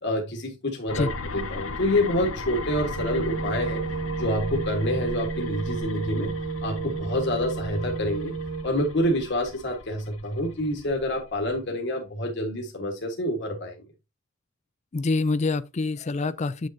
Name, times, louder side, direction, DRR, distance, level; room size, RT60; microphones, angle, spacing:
voice 1, 0.0-3.8 4.2-6.3 6.6-8.3 8.6-13.8, left 1 dB, 60° left, 1.4 m, -27 dB
sound 1, 0.9-11.6, left 3 dB, 90° left, 1.0 m, -37 dB
sound 2, 2.9-8.6, right 5 dB, 70° right, 1.3 m, -32 dB
voice 2, 14.9-16.7, left 3 dB, 35° left, 0.4 m, -26 dB
8.5 x 6.4 x 2.6 m
head